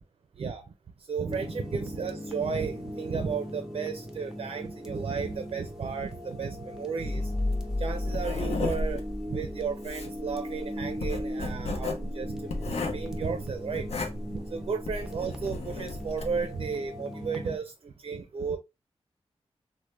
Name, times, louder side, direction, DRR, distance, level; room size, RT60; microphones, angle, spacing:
voice 1, 1.1-7.3 7.8-9.0 9.3-13.9 14.3-18.6, right 5 dB, 55° right, 0.4 m, -33 dB
sound 1, 1.3-17.6, equal, 5° right, 0.5 m, -39 dB
sound 2, 7.0-10.3, left 2 dB, 25° left, 1.0 m, -33 dB
Writing, 7.5-16.4, left 2 dB, 75° left, 0.6 m, -35 dB
3.2 x 2.1 x 3.0 m
wide cardioid pair, 115°, 11 cm